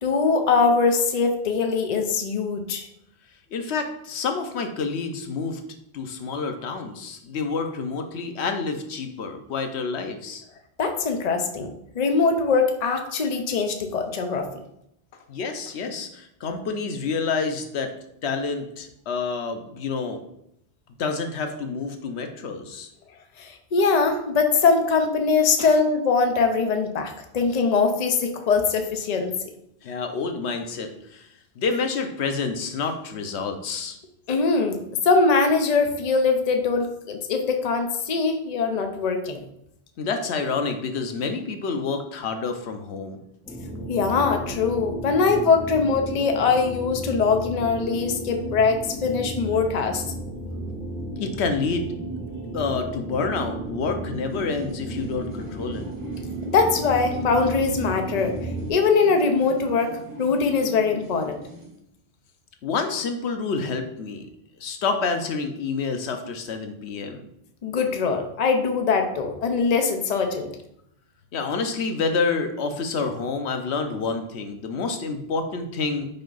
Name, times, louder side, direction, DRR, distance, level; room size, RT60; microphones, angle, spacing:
voice 1, 0.0-2.9 10.8-14.5 23.4-29.5 34.3-34.8 35.0-39.4 43.9-50.0 56.4-58.4 58.7-61.4 67.6-70.5, left 4 dB, 45° left, 5 dB, 0.7 m, -22 dB
voice 2, 3.5-5.6 5.9-10.4 15.3-17.9 18.2-20.2 21.0-22.9 25.6-25.7 29.8-31.3 31.6-34.0 40.0-43.2 51.2-51.9 52.5-55.8 62.6-64.3 64.6-67.2 71.3-76.1, left 4 dB, 85° left, 6 dB, 1.0 m, -28 dB
sound 1, 43.4-58.7, right 1 dB, ahead, 1.3 m, -34 dB
sound 2, 54.3-61.8, right 2 dB, 70° right, 1.5 m, -41 dB
5.5 x 4.5 x 3.9 m, 0.77 s
omnidirectional pair, 1.1 m